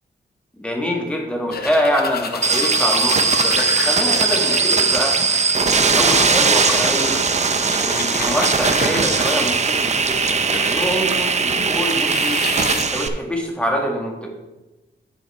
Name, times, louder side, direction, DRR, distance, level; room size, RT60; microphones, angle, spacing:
voice 1, 0.6-5.2 5.7-7.2 7.8-12.4 12.9-14.3, equal, 5° left, 0 dB, 1.9 m, -25 dB
sound 1, 1.5-11.0 11.5-12.8, left 5 dB, 60° left, 0.7 m, -31 dB
sound 2, 2.4-13.1, right 4 dB, 35° right, 0.6 m, -19 dB
9.8 x 5.8 x 4.3 m, 1.1 s
wide cardioid pair, 120°, 19 cm